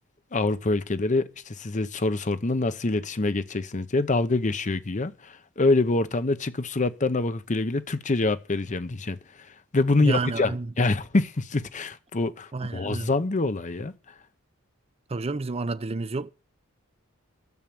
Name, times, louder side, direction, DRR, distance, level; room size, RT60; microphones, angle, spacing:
voice 1, 0.3-9.2 9.7-13.9, left 2 dB, 35° left, 0.7 m, -25 dB
voice 2, 10.0-10.7 12.5-13.1 15.1-16.3, right 3 dB, 30° right, 0.5 m, -30 dB
10.5 x 7.3 x 8.6 m
head